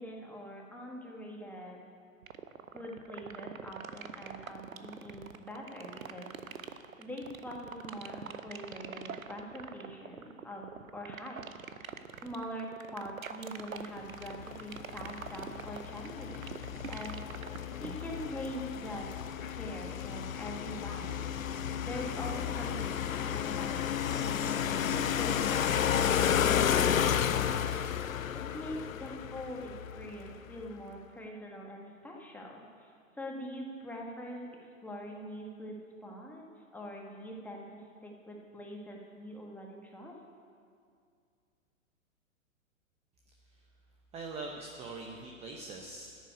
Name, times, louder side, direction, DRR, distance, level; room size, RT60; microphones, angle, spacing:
voice 1, 0.0-1.9 2.7-6.7 7.0-11.4 12.2-17.4 17.8-19.1 19.5-21.2 21.8-27.7 28.3-32.9 33.2-34.5 34.8-36.5 36.7-37.7 38.0-40.2, equal, 5° left, -1 dB, 1.5 m, -43 dB
sound 1, 2.2-18.2, right 7 dB, 80° right, 0.8 m, -43 dB
sound 2, 14.2-30.4, left 9 dB, 75° left, 0.6 m, -32 dB
voice 2, 44.1-46.2, right 3 dB, 15° right, 2 dB, 0.8 m, -42 dB
10.0 x 7.5 x 9.3 m, 2.3 s
figure-of-eight pair, 115°, 41 cm